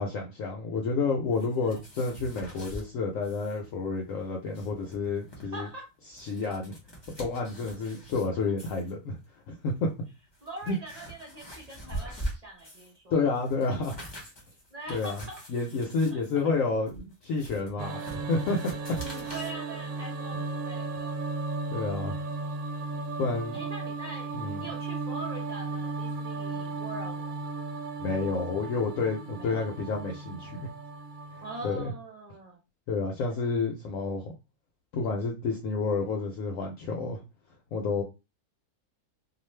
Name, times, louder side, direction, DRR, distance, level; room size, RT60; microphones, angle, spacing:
voice 1, 0.0-5.7 6.1-6.8 7.2-9.2 9.5-9.9 10.7-10.8 13.1-14.0 14.9-15.2 15.5-18.7 21.7-22.2 23.2-23.6 24.3-24.7 28.0-30.6 31.6-31.9 32.9-34.3 34.9-37.2 37.7-38.0, left 4 dB, 70° left, 1 dB, 0.9 m, -30 dB
sound 1, 1.3-2.9 3.2-3.6 3.8-3.9 4.3-5.4 6.0-8.3 8.6-8.9 9.7-9.8 10.3-13.0 13.3-19.5, right 1 dB, 20° left, 0.8 m, -43 dB
voice 2, 5.4-5.9 7.8-7.9 10.4-13.3 14.7-15.4 16.1-16.2 19.0-21.3 22.0-22.4 23.5-27.6 29.4-29.7 31.4-32.6 33.3-33.4, right 1 dB, 40° right, -1 dB, 0.5 m, -43 dB
sound 2, 17.8-31.7, right 3 dB, 70° right, 0.9 m, -35 dB
2.5 x 2.4 x 3.1 m, 0.27 s
omnidirectional pair, 1.6 m